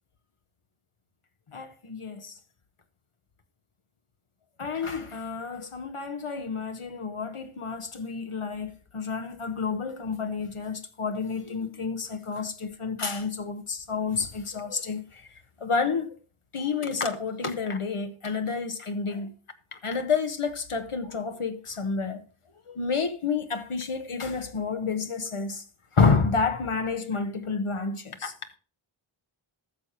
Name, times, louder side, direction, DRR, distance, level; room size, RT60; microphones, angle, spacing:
voice 1, 1.5-2.4 4.6-15.3 15.6-16.2 16.5-19.3 19.7-22.2 22.7-25.6 25.9-28.3, left 5 dB, 80° left, 1.2 m, -29 dB
13.5 x 6.7 x 4.3 m
wide cardioid pair, 45°, 50 cm